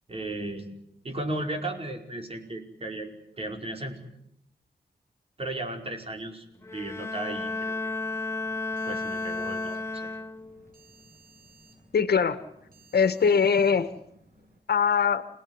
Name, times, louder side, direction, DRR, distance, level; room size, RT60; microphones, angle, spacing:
voice 1, 0.1-0.8 1.0-3.1 3.4-4.0 5.4-6.4 6.7-7.9 8.9-10.1, right 1 dB, 35° right, 3 dB, 5.2 m, -35 dB
Bowed string instrument, 6.6-10.7, left 3 dB, 15° left, 1.0 m, -33 dB
sound 1, 7.3-14.6, right 2 dB, 60° right, 8.0 m, -57 dB
voice 2, 11.9-12.4 12.9-13.9 14.7-15.2, left 6 dB, 75° left, 11 dB, 1.7 m, -22 dB
29.0 x 18.5 x 9.8 m, 0.77 s
wide cardioid pair, 130°, 17 cm